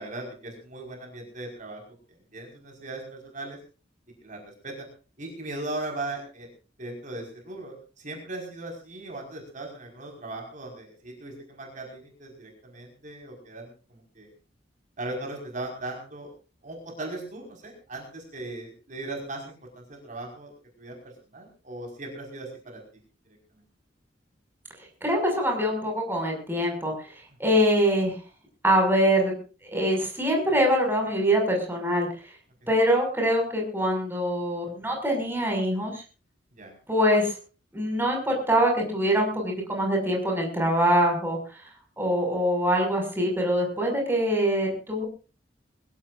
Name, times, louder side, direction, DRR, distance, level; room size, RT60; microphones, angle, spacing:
voice 1, 0.0-1.8 2.3-3.6 4.2-4.9 5.2-6.5 6.8-14.3 15.0-16.3 16.6-20.5 20.8-21.0 21.3-22.8 36.6-36.7, right 2 dB, 45° right, 2 dB, 5.3 m, -38 dB
voice 2, 25.0-26.9 27.4-28.1 28.6-29.3 29.7-32.1 32.7-36.0 36.9-37.4 37.7-41.4 42.0-45.1, equal, 10° right, 1 dB, 6.2 m, -24 dB
22.5 x 16.5 x 2.6 m, 0.35 s
head